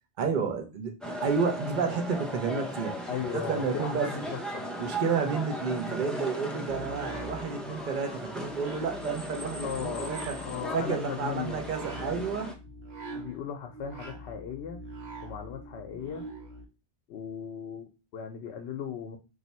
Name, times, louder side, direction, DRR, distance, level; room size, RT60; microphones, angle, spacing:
voice 1, 0.2-3.0 3.3-4.2 4.8-10.4 10.7-12.5, right 5 dB, 50° right, 4 dB, 0.9 m, -31 dB
sound 1, 1.0-12.5, equal, ahead, 0.3 m, -37 dB
voice 2, 3.1-4.7 9.6-11.6 13.1-14.8 15.2-16.3 17.1-19.2, left 7 dB, 75° left, 3 dB, 0.8 m, -37 dB
sound 2, 6.7-16.7, right 1 dB, 70° right, 1.1 m, -43 dB
3.4 x 2.7 x 4.1 m, 0.29 s
omnidirectional pair, 1.1 m